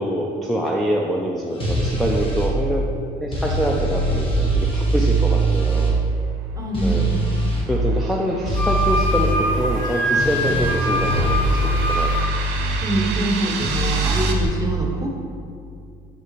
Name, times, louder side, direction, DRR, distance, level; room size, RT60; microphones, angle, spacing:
voice 1, 0.0-2.9 3.2-6.0 6.8-7.1 7.7-12.1, equal, ahead, -2 dB, 0.4 m, -25 dB
sound 1, 1.6-2.5 3.3-5.9 6.7-7.7 8.5-9.4 10.2-12.8 13.6-14.5, right 2 dB, 30° left, 1.2 m, -22 dB
voice 2, 6.6-7.3 12.8-15.1, right 1 dB, 20° right, 0 dB, 1.0 m, -25 dB
sound 2, 6.6-14.3, right 5 dB, 80° right, 0.7 m, -32 dB
Wind instrument woodwind instrument, 8.5-12.3, equal, 50° left, 1.2 m, -24 dB
6.0 x 5.3 x 3.1 m, 2.3 s
cardioid pair, 110°, 17 cm